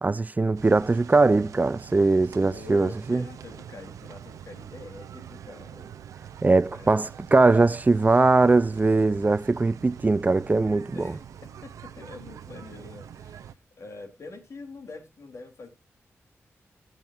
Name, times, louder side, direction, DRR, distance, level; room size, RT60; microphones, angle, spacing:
voice 1, 0.0-3.2 6.4-11.1, right 3 dB, 30° right, 0.6 m, -21 dB
sound 1, 0.6-13.5, right 9 dB, 90° right, 0.6 m, -44 dB
voice 2, 2.5-6.0 6.7-7.2 10.9-15.7, left 3 dB, 65° left, 3.5 m, -45 dB
15.0 x 9.2 x 2.6 m
cardioid pair, 50°, 5 cm